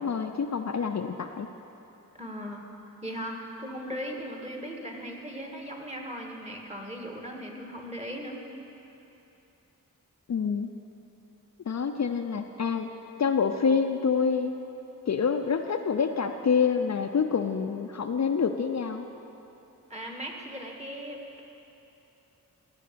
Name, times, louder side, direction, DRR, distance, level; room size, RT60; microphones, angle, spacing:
voice 1, 0.0-1.5 10.3-10.7 11.7-12.9 13.2-14.5 15.1-19.0, left 6 dB, 50° left, 6 dB, 0.5 m, -27 dB
voice 2, 2.2-2.7 3.0-8.4 19.9-21.4, equal, 20° right, 1 dB, 1.7 m, -38 dB
15.0 x 6.6 x 6.8 m, 3.0 s
wide cardioid pair, 80°, 34 cm